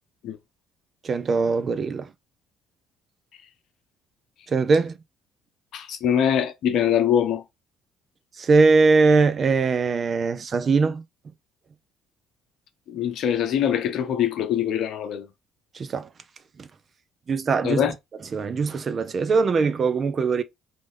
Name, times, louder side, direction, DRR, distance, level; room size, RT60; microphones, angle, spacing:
voice 1, 1.0-2.1 4.5-5.0 8.4-11.0 15.7-16.1 16.6-16.7 17.3-17.8 18.3-20.4, right 4 dB, 45° right, 0.6 m, -21 dB
voice 2, 5.7-7.4 12.9-15.3 17.6-17.9, left 9 dB, 65° left, 0.7 m, -23 dB
3.9 x 3.2 x 3.5 m
hypercardioid pair, 55°, 0 cm